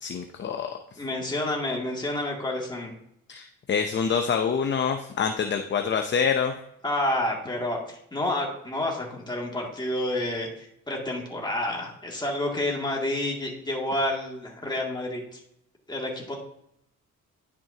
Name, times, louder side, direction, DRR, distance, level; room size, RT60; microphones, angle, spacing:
voice 1, 0.0-0.7 3.3-6.5, left 6 dB, 40° left, 5 dB, 0.7 m, -26 dB
voice 2, 1.0-2.9 6.8-15.4 15.9-16.4, left 1 dB, 15° left, -2 dB, 2.3 m, -29 dB
10.0 x 6.1 x 2.8 m, 0.76 s
cardioid pair, 90°, 30 cm